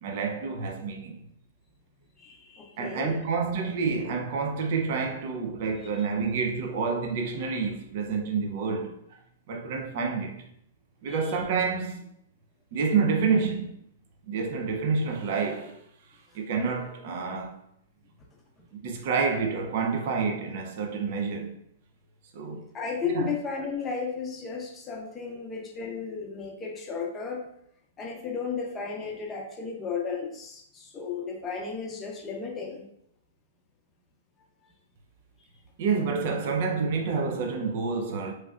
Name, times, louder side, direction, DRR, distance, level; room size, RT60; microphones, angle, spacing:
voice 1, 0.0-1.2 2.8-9.2 9.5-10.4 11.0-12.1 12.7-13.8 14.3-15.8 16.3-17.6 18.8-21.5 22.3-22.7 23.0-23.3 35.8-38.3, right 5 dB, 55° right, 0.5 m, -28 dB
voice 2, 2.2-3.2 11.1-11.4 22.7-27.4 28.0-32.9, left 5 dB, 20° left, 0.6 m, -34 dB
3.1 x 2.7 x 2.4 m
hypercardioid pair, 135°, 0 cm